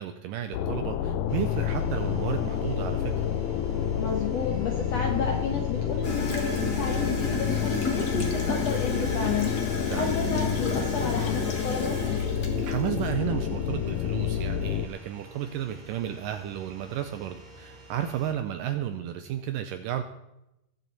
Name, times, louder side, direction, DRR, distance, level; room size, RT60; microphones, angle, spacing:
voice 1, 0.0-3.2 9.9-10.2 12.6-20.0, right 10 dB, 80° right, 8 dB, 2.0 m, -32 dB
sound 1, 0.5-14.9, left 9 dB, 80° left, 2.0 m, -29 dB
sound 2, 1.3-18.3, right 2 dB, 40° right, 2.7 m, -50 dB
voice 2, 3.9-9.5 9.9-12.0, left 4 dB, 65° left, 2 dB, 1.7 m, -32 dB
Gurgling / Toilet flush, 6.0-13.1, left 2 dB, 40° left, 1.5 m, -32 dB
21.5 x 7.4 x 4.1 m, 0.89 s
omnidirectional pair, 4.5 m